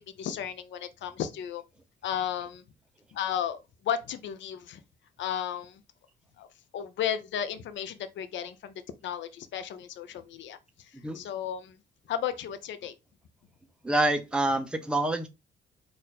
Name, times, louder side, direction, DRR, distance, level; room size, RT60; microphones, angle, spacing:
voice 1, 0.2-1.6 2.0-2.6 3.1-3.6 3.8-4.8 5.2-5.8 6.4-6.5 6.7-8.7 9.0-11.8 12.1-12.9, left 9 dB, 70° left, 0.6 m, -34 dB
voice 2, 13.8-15.3, right 1 dB, 5° right, 0.6 m, -26 dB
4.3 x 2.5 x 4.1 m
cardioid pair, 90°, 20 cm